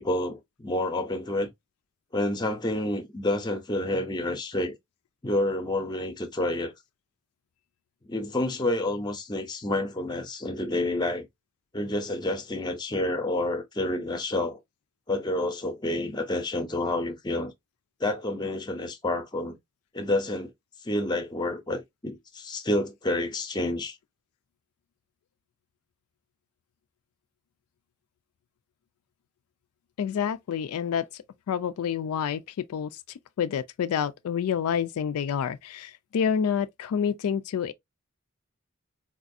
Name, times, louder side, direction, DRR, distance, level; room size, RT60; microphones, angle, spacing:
voice 1, 0.0-1.5 2.1-4.7 5.2-6.7 8.1-11.3 11.7-14.6 15.1-17.5 18.0-19.5 19.9-20.5 20.8-24.0, left 1 dB, 20° left, 0.6 m, -29 dB
voice 2, 30.0-32.4 32.7-32.9 33.4-37.7, left 7 dB, 80° left, 0.3 m, -28 dB
3.9 x 2.4 x 2.5 m
head